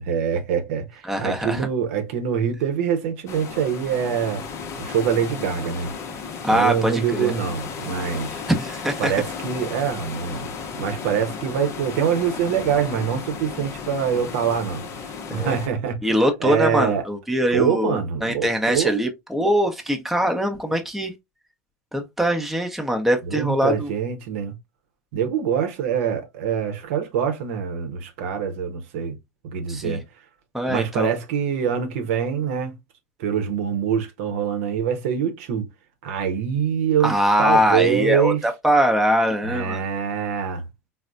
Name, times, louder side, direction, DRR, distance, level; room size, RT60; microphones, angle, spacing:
voice 1, 0.1-4.4 4.8-5.9 6.5-8.4 9.0-10.5 10.8-16.0 16.4-17.0 17.5-18.9 23.2-24.5 25.1-29.1 29.4-30.0 30.7-32.8 33.2-35.7 36.0-37.1 37.4-38.4 39.4-40.6, right 8 dB, 60° right, 0.8 m, -24 dB
voice 2, 1.0-1.7 6.4-7.3 8.5-9.1 15.3-15.5 16.0-21.1 21.9-23.9 29.7-30.0 30.5-31.1 37.0-39.8, equal, ahead, 0.7 m, -22 dB
sound 1, 3.3-15.7, left 5 dB, 35° left, 0.7 m, -34 dB
4.0 x 2.0 x 2.4 m
figure-of-eight pair, 85°, 8 cm